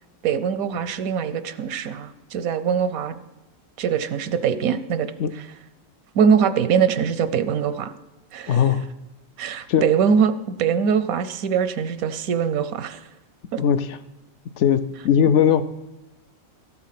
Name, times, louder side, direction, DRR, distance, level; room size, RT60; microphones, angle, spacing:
voice 1, 0.2-3.2 3.8-5.1 6.1-7.9 8.3-8.6 9.4-13.0 13.5-13.6, right 7 dB, 85° right, 12 dB, 1.1 m, -22 dB
voice 2, 8.5-8.8 9.7-9.9 13.6-14.0 14.6-15.6, left 8 dB, 65° left, 11 dB, 0.8 m, -19 dB
14.0 x 8.4 x 5.8 m, 1.0 s
omnidirectional pair, 1.4 m